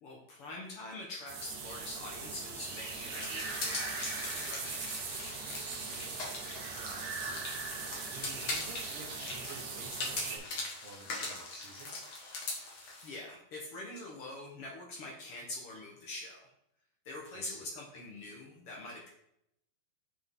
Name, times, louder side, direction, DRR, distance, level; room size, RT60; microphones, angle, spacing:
voice 1, 0.0-5.0 12.7-16.5 17.0-19.1, left 2 dB, 65° left, -1 dB, 1.4 m, -45 dB
sound 1, 1.3-10.4, right 4 dB, 65° right, 1.8 m, -40 dB
sound 2, 3.1-13.1, left 3 dB, 50° left, 1.6 m, -41 dB
voice 2, 5.8-6.3 6.8-11.9 17.3-17.7, right 2 dB, 85° right, -1 dB, 1.3 m, -51 dB
7.6 x 6.1 x 3.7 m, 0.76 s
omnidirectional pair, 4.3 m